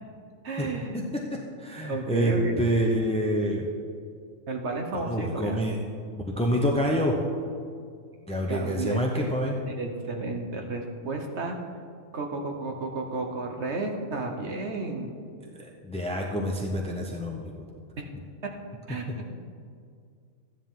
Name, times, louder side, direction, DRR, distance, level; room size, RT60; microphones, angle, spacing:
voice 1, 0.4-1.0 1.8-2.6 4.5-5.6 8.5-9.0 9.7-11.6 12.1-15.1 18.0-18.1 18.9-19.4, right 3 dB, 55° right, 3 dB, 1.3 m, -32 dB
voice 2, 1.6-3.7 4.9-5.8 6.3-7.2 8.3-9.6 15.5-17.5 18.9-19.0, equal, 5° left, -1 dB, 0.4 m, -27 dB
13.0 x 10.0 x 3.7 m, 2.2 s
omnidirectional pair, 1.4 m